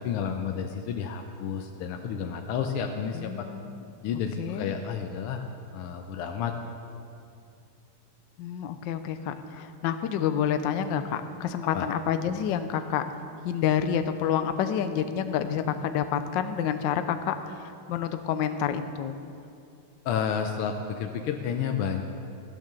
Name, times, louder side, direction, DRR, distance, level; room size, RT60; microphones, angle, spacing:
voice 1, 0.0-3.5 4.0-5.4 5.7-6.5 6.9-7.0 11.7-11.9 20.1-22.0, left 7 dB, 85° left, 4 dB, 1.7 m, -31 dB
voice 2, 3.1-3.8 4.4-4.7 8.4-13.0 13.4-19.2, left 8 dB, 65° left, 9 dB, 1.2 m, -28 dB
15.5 x 9.1 x 6.7 m, 2.5 s
omnidirectional pair, 2.4 m